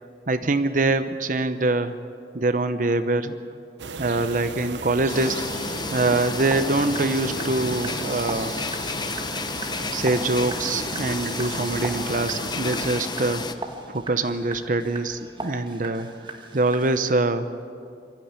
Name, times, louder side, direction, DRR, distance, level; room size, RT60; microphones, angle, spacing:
voice 1, 0.3-2.0 2.3-3.4 4.0-5.4 5.9-8.5 9.9-17.5, right 2 dB, 45° right, 11 dB, 0.8 m, -24 dB
sound 1, 3.8-13.0, right 5 dB, 85° right, 0.7 m, -37 dB
sound 2, 5.1-13.5, left 3 dB, 25° left, 0.7 m, -31 dB
sound 3, 5.7-17.1, right 2 dB, 25° right, 1.5 m, -40 dB
23.5 x 13.5 x 9.7 m, 2.4 s
head